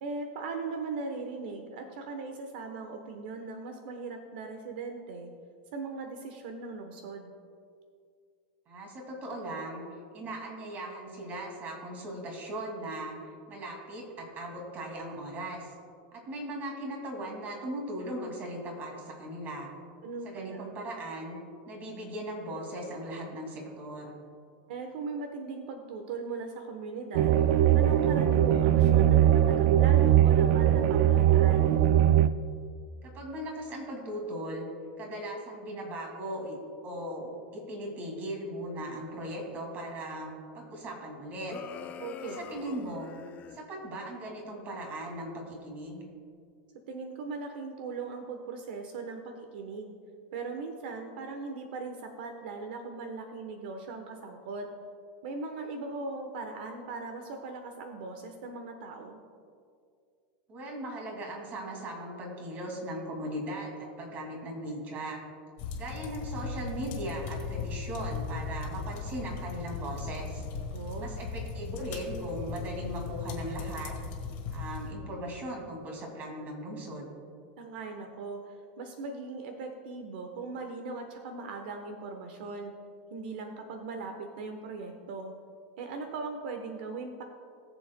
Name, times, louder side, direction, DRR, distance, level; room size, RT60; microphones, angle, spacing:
voice 1, 0.0-5.3 5.7-7.3 20.0-20.7 24.7-27.4 27.7-31.7 42.0-42.4 46.9-49.9 50.3-54.7 55.2-59.2 70.7-71.2 77.6-82.7 83.1-85.3 85.8-87.2, right 4 dB, 75° right, 5 dB, 1.0 m, -39 dB
voice 2, 8.7-9.8 10.1-13.2 13.5-15.7 16.1-19.7 20.2-21.4 21.7-24.2 33.0-34.7 35.0-36.6 36.8-41.5 42.2-43.1 43.5-46.0 60.5-65.2 65.7-70.4 71.0-73.9 74.5-77.1, right 1 dB, 35° right, 1 dB, 2.2 m, -38 dB
sound 1, 27.1-32.3, right 11 dB, 55° right, 0.4 m, -21 dB
sound 2, 41.5-43.6, left 8 dB, 30° left, 0.5 m, -44 dB
sound 3, 65.6-74.9, left 4 dB, 50° left, 1.6 m, -37 dB
21.0 x 7.0 x 2.2 m, 2.3 s
supercardioid pair, 145°, 5 cm